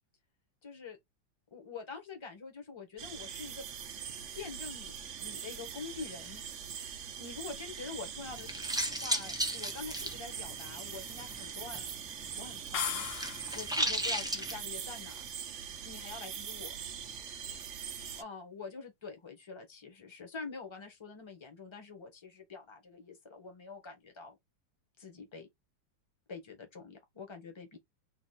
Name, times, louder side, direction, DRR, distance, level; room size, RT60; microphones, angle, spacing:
voice 1, 0.6-1.0 1.5-3.7 4.3-6.4 7.2-8.5 9.0-11.8 12.4-13.0 13.5-15.2 15.8-16.7 18.1-24.4 25.0-25.5 26.3-27.8, left 4 dB, 15° left, 1.3 m, -46 dB
sound 1, 3.0-18.2, right 8 dB, 60° right, 0.8 m, -42 dB
sound 2, 8.2-11.9 12.2-14.5, equal, 5° right, 0.4 m, -35 dB
sound 3, 12.7-13.8, left 7 dB, 60° left, 0.9 m, -36 dB
4.0 x 2.9 x 4.3 m
omnidirectional pair, 2.0 m